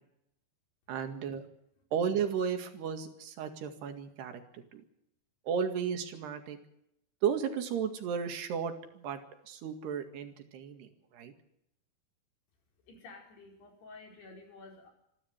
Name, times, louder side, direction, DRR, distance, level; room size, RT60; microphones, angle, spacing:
voice 1, 0.9-1.5 1.9-4.8 5.5-6.6 7.2-9.2 9.5-11.3, right 7 dB, 80° right, 6 dB, 4.1 m, -34 dB
voice 2, 12.8-14.9, left 3 dB, 75° left, 2 dB, 6.6 m, -51 dB
27.0 x 12.5 x 8.0 m, 0.79 s
omnidirectional pair, 4.7 m